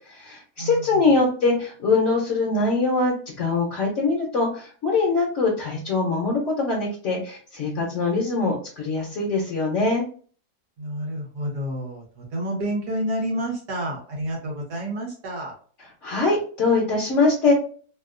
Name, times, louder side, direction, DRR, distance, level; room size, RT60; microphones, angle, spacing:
voice 1, 0.1-10.0 16.0-17.5, left 3 dB, 55° left, -2 dB, 1.0 m, -23 dB
voice 2, 0.6-1.1 10.8-15.5, right 1 dB, 80° right, -1 dB, 1.8 m, -29 dB
3.5 x 2.4 x 2.4 m, 0.43 s
omnidirectional pair, 1.7 m